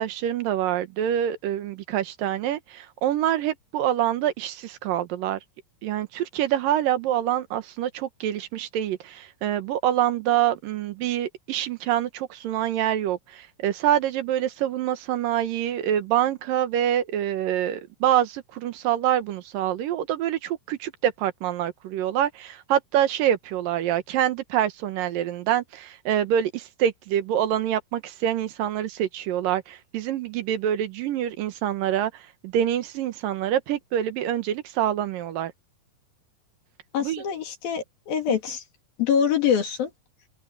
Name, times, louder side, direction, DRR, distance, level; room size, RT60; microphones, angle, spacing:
voice 1, 0.0-5.4 5.8-35.5 37.0-37.2 38.3-38.4, right 11 dB, 75° right, 2.9 m, -26 dB
voice 2, 36.9-38.6 39.0-39.9, left 8 dB, 80° left, 4.5 m, -24 dB
omnidirectional pair, 4.1 m